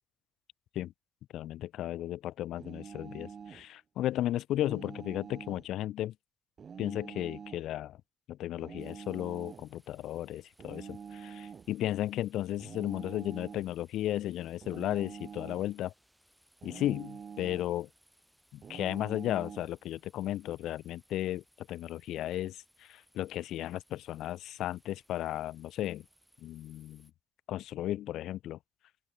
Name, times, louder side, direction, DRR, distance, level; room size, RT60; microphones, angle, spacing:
voice 1, 1.3-6.1 6.8-8.0 8.3-15.9 16.6-17.9 18.5-26.0 26.4-27.1 27.5-28.6, left 13 dB, 80° left, 1.0 m, -35 dB
sound 1, 2.6-3.7 4.6-5.7 6.6-7.7 8.6-9.7 10.6-11.7 12.6-13.7 14.6-15.7 16.6-17.7 18.6-19.7, right 6 dB, 50° right, 0.5 m, -46 dB
sound 2, 8.8-27.1, equal, 5° right, 7.5 m, -67 dB
open air
cardioid pair, 90°, 0 cm